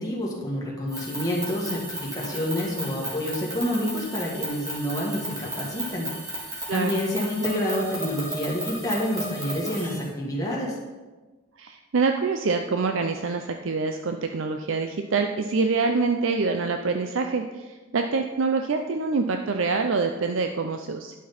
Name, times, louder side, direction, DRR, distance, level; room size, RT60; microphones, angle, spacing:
voice 1, 0.0-10.8, left 1 dB, 15° left, -4 dB, 1.8 m, -28 dB
sound 1, 0.9-10.1, right 1 dB, 15° right, 2.2 m, -35 dB
voice 2, 6.7-7.0 11.6-21.1, right 4 dB, 70° right, 5 dB, 0.5 m, -25 dB
11.0 x 6.1 x 4.3 m, 1.3 s
head